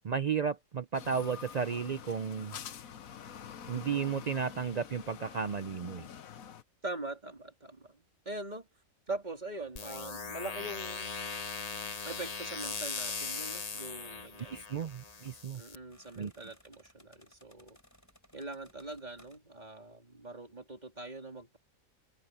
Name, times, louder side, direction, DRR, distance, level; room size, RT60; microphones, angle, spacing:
voice 1, 0.0-2.6 3.7-6.1 14.5-15.6 16.2-16.3, right 6 dB, 70° right, 0.4 m, -33 dB
sound 1, 0.9-6.6, left 8 dB, 80° left, 1.4 m, -47 dB
voice 2, 6.8-8.7 9.1-11.1 12.0-14.7 15.5-17.8 18.3-21.6, right 2 dB, 30° right, 3.4 m, -42 dB
sound 2, 9.8-15.8, left 4 dB, 30° left, 0.9 m, -39 dB
sound 3, 12.7-19.4, equal, 10° left, 5.6 m, -62 dB
omnidirectional pair, 1.4 m